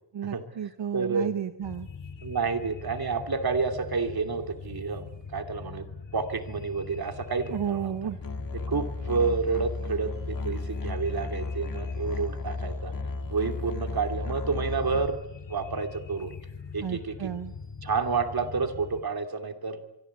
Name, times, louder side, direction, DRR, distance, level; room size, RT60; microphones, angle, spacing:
voice 1, 0.1-1.9 7.5-8.2 16.8-17.5, right 9 dB, 85° right, 11 dB, 1.0 m, -32 dB
voice 2, 0.9-1.3 2.2-5.8 6.1-8.0 8.5-12.9 13.3-15.2 15.5-16.4 16.7-17.3 17.8-19.8, right 4 dB, 60° right, 6 dB, 2.8 m, -29 dB
sound 1, 1.6-19.0, left 5 dB, 85° left, 3.1 m, -42 dB
Musical instrument, 8.2-15.1, left 3 dB, 50° left, 1.9 m, -34 dB
25.0 x 23.5 x 8.4 m, 0.88 s
wide cardioid pair, 125°, 42 cm